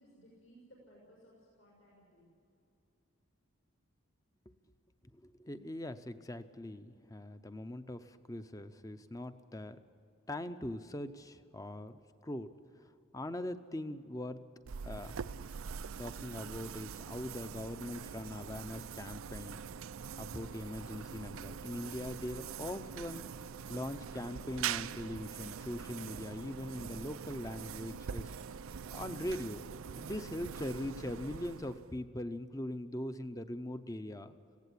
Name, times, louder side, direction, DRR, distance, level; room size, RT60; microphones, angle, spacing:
voice 1, 0.0-2.3, equal, 75° left, -4 dB, 6.3 m, -60 dB
voice 2, 5.1-9.8 10.3-12.5 12.8-14.4 14.8-15.2 16.0-19.6 20.2-23.3 23.7-28.3 28.9-29.6 30.0-34.4, left 1 dB, 15° left, 10 dB, 0.6 m, -41 dB
sound 1, 14.7-32.0, right 7 dB, 75° right, 0.5 m, -43 dB
19.0 x 16.5 x 8.4 m, 2.7 s
head